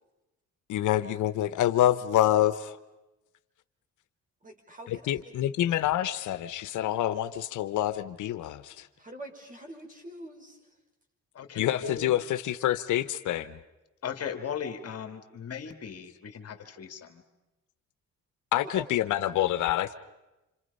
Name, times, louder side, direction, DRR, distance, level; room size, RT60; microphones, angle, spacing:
voice 1, 0.7-2.8 4.9-8.7 11.6-13.6 18.5-19.9, left 12 dB, 75° left, 11 dB, 1.0 m, -27 dB
voice 2, 4.4-5.3 9.0-10.6 18.6-18.9, equal, 25° right, 2 dB, 5.8 m, -44 dB
voice 3, 11.3-12.2 14.0-17.2, left 7 dB, 55° left, 6 dB, 2.3 m, -37 dB
29.0 x 27.5 x 5.5 m, 1.0 s
cardioid pair, 90°, 30 cm